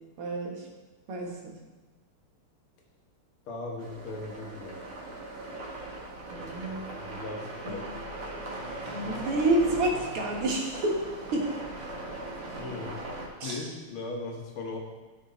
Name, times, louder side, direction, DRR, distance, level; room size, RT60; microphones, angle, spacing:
voice 1, 0.2-0.7 1.1-1.5 6.3-6.9 7.6-7.9 8.9-11.0 11.3-11.5 13.4-13.7, right 2 dB, 85° right, 0 dB, 2.5 m, -29 dB
voice 2, 3.5-4.8 6.4-7.8 12.5-13.0 13.4-14.8, left 2 dB, 75° left, 0 dB, 2.3 m, -38 dB
sound 1, 3.8-13.3, right 1 dB, 60° right, 2.1 m, -39 dB
12.0 x 6.1 x 4.1 m, 1.2 s
omnidirectional pair, 2.4 m